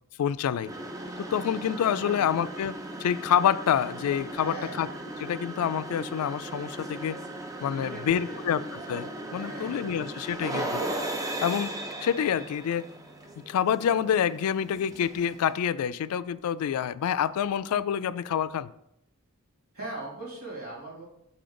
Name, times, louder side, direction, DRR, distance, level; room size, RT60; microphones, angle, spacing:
voice 1, 0.2-0.7 1.3-4.9 5.2-7.2 7.6-8.6 8.9-10.8 11.4-11.7 12.0-12.9 13.5-18.7, left 9 dB, 85° left, 16 dB, 0.3 m, -27 dB
sound 1, 0.6-15.6, right 1 dB, 15° right, 0.6 m, -37 dB
voice 2, 2.0-2.4 4.4-4.8 7.8-8.4 9.2-10.0 19.7-21.0, right 2 dB, 85° right, -5 dB, 2.5 m, -40 dB
6.8 x 4.1 x 3.8 m, 0.78 s
head